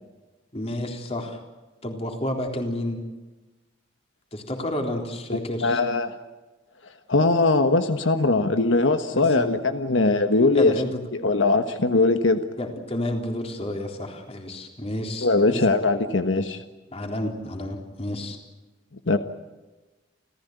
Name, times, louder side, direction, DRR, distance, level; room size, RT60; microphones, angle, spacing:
voice 1, 0.5-1.4 1.8-3.0 4.3-5.8 9.1-9.5 10.5-11.1 12.6-15.6 16.9-18.4, left 1 dB, 35° left, 3 dB, 3.8 m, -30 dB
voice 2, 5.6-6.2 7.1-10.7 11.1-12.4 15.2-16.6 19.1-19.2, left 3 dB, 90° left, 8 dB, 1.4 m, -21 dB
29.5 x 15.0 x 9.4 m, 1.2 s
head